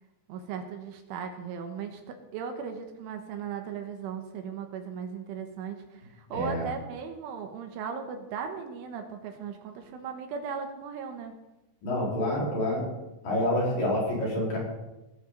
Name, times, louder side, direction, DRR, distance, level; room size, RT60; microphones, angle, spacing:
voice 1, 0.3-11.4, right 6 dB, 75° right, 5 dB, 3.5 m, -37 dB
voice 2, 6.3-6.7 11.8-12.9 13.2-14.6, left 1 dB, 45° left, -4 dB, 5.6 m, -27 dB
18.5 x 12.5 x 3.9 m, 0.99 s
omnidirectional pair, 5.9 m